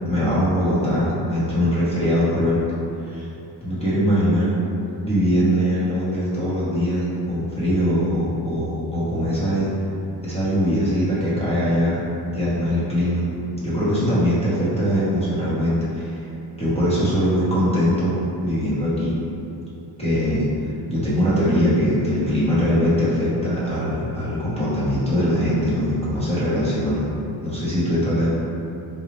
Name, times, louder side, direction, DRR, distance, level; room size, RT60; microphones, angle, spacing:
voice 1, 0.0-2.6 3.1-3.3 3.6-4.5 5.0-9.7 10.2-12.0 12.3-13.3 13.6-16.2 16.6-18.2 18.4-19.1 20.0-20.5 20.9-27.0 27.4-28.3, equal, 15° left, -10 dB, 0.9 m, -21 dB
3.9 x 2.3 x 3.0 m, 2.8 s
cardioid pair, 130°, 44 cm